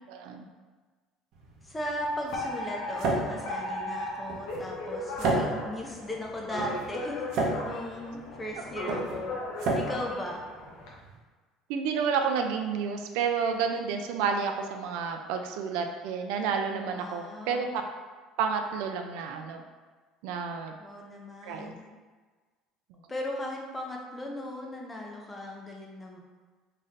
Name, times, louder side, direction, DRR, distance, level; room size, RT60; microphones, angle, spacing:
voice 1, 0.1-0.5 11.7-17.7 18.4-19.6 20.2-20.7 21.4-21.7, right 6 dB, 80° right, 5 dB, 0.4 m, -30 dB
sound 1, 1.3-11.2, right 2 dB, 55° right, 0.7 m, -33 dB
voice 2, 1.6-9.4 9.7-10.4 16.9-17.7 20.8-21.8 23.1-26.2, left 1 dB, 10° left, -1 dB, 0.5 m, -37 dB
Alarm, 2.3-10.9, left 1 dB, 65° left, 0.8 m, -37 dB
3.2 x 2.5 x 4.0 m, 1.4 s
cardioid pair, 160°, 0 cm